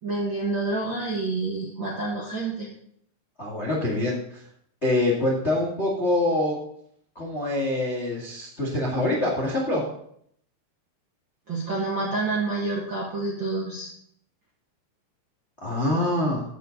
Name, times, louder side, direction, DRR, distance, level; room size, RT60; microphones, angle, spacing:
voice 1, 0.0-2.7 11.5-13.9, right 3 dB, 45° right, -4 dB, 1.7 m, -28 dB
voice 2, 3.4-4.4 4.8-6.6 7.1-9.8 15.6-16.4, left 1 dB, 30° left, -2 dB, 1.3 m, -25 dB
14.0 x 7.8 x 4.0 m, 0.69 s
omnidirectional pair, 4.7 m